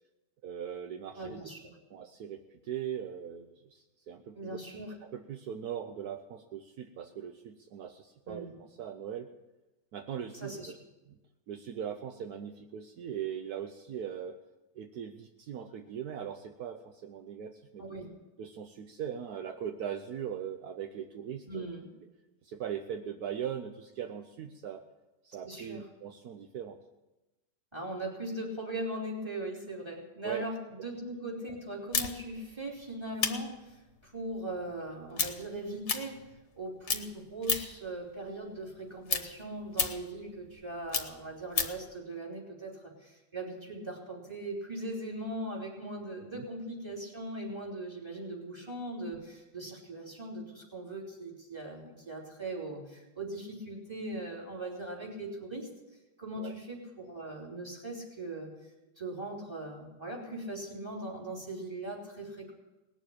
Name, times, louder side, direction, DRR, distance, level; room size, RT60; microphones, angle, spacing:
voice 1, 0.4-1.5 1.9-4.6 5.0-8.5 8.8-9.3 9.9-10.6 11.1-11.2 11.5-14.4 14.7-18.0 18.4-21.7 22.4-24.9 25.2-26.8 30.2-30.4 30.8-30.9 46.2-46.4 56.4-56.5, right 9 dB, 70° right, 6 dB, 1.3 m, -40 dB
voice 2, 1.2-1.6 4.3-4.9 8.3-8.6 10.3-10.7 17.8-18.1 21.5-21.9 25.4-25.8 27.7-30.5 30.8-36.2 36.5-55.7 56.2-58.5 59.0-62.5, right 1 dB, 15° right, -1 dB, 3.4 m, -40 dB
sound 1, 31.9-36.6 36.8-37.9 38.2-41.9, left 5 dB, 50° left, 1.3 m, -33 dB
19.0 x 7.2 x 8.6 m, 1.0 s
omnidirectional pair, 1.7 m